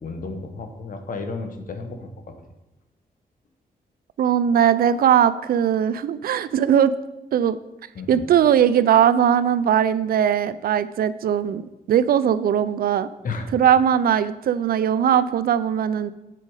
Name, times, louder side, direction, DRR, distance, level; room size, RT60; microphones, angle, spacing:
voice 1, 0.0-2.3 7.9-8.2 13.2-13.5, left 4 dB, 60° left, 6 dB, 1.0 m, -33 dB
voice 2, 4.2-6.9 7.3-7.6 8.1-11.6 11.9-13.1 13.5-16.1, right 9 dB, 75° right, 15 dB, 0.4 m, -19 dB
7.7 x 5.1 x 4.8 m, 1.0 s
cardioid pair, 90°, 16 cm